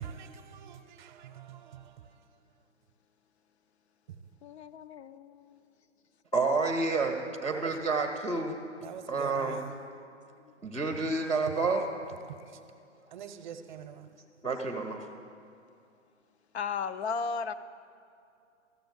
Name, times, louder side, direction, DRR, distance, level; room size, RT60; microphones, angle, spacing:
voice 1, 0.0-2.2 4.1-4.2 7.5-8.0 8.8-9.8 11.4-11.5 12.3-12.6 13.1-14.1, right 8 dB, 40° right, 0.7 m, -44 dB
voice 2, 4.4-5.6 16.5-17.5, left 5 dB, 60° left, 0.6 m, -35 dB
voice 3, 6.3-8.6 9.1-9.6 10.6-11.9 14.4-15.0, right 3 dB, 5° left, 0.4 m, -29 dB
13.5 x 6.8 x 7.9 m
hypercardioid pair, 140°, 37 cm